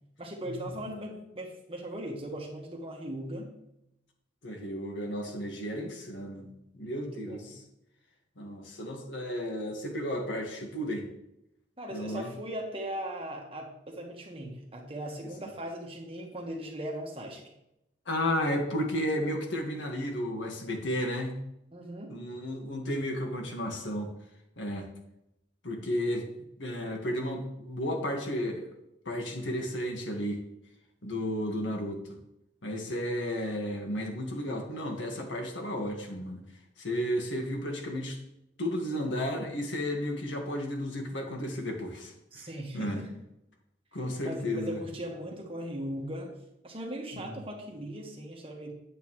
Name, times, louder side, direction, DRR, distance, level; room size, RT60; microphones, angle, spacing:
voice 1, 0.2-3.5 6.8-7.6 11.8-17.5 21.7-22.1 42.3-43.1 44.2-46.4 46.6-48.7, right 1 dB, 30° right, 0 dB, 1.5 m, -39 dB
voice 2, 4.4-7.6 8.4-11.1 11.9-12.3 15.4-15.5 18.0-21.4 22.1-24.1 24.6-24.9 25.6-26.3 26.6-28.7 29.0-30.4 31.0-32.0 32.6-36.4 36.8-38.2 38.6-42.5 42.7-43.0 43.9-44.8 47.1-47.4, equal, 85° left, 2 dB, 1.7 m, -33 dB
9.3 x 8.3 x 3.2 m, 0.84 s
head